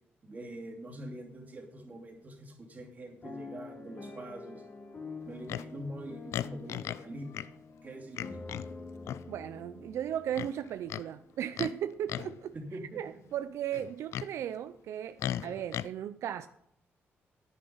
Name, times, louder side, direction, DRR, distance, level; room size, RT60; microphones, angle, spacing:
voice 1, 0.2-4.7 5.2-8.4 12.5-13.2, right 1 dB, 35° right, 2.8 m, -44 dB
sound 1, 3.2-11.3 11.9-12.0 12.3-12.6, left 3 dB, 40° left, 2.0 m, -47 dB
Livestock farm animals working animals, 5.5-5.7 6.3-7.1 7.3-7.5 8.1-8.7 9.0-9.3 10.3-11.1 11.5-11.8 12.1-12.4 13.7-14.3 15.2-15.9, left 11 dB, 80° left, 0.3 m, -36 dB
voice 2, 9.3-12.5 12.9-16.5, right 10 dB, 85° right, 0.4 m, -36 dB
10.0 x 9.9 x 5.5 m
cardioid pair, 110°, 5 cm